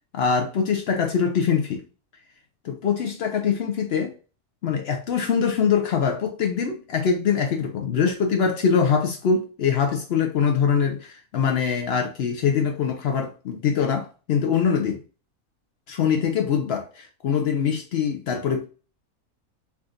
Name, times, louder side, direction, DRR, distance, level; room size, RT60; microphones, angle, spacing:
voice 1, 0.1-1.8 2.6-4.1 4.6-15.0 15.9-18.6, left 6 dB, 70° left, 0.6 m, -23 dB
3.5 x 2.6 x 2.4 m
omnidirectional pair, 1.6 m